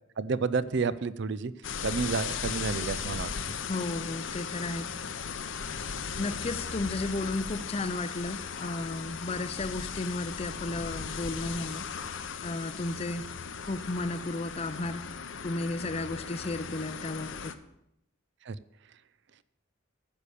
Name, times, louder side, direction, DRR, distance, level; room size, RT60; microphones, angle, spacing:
voice 1, 0.2-1.5 1.8-3.3 18.5-18.6, right 4 dB, 60° right, 17 dB, 0.5 m, -30 dB
sound 1, 1.6-17.5, left 6 dB, 65° left, 0.7 m, -37 dB
voice 2, 3.7-4.9 6.2-11.9 12.4-13.3 13.7-15.1 15.4-17.5, left 2 dB, 30° left, 12 dB, 0.5 m, -33 dB
10.0 x 6.7 x 8.4 m, 0.81 s
head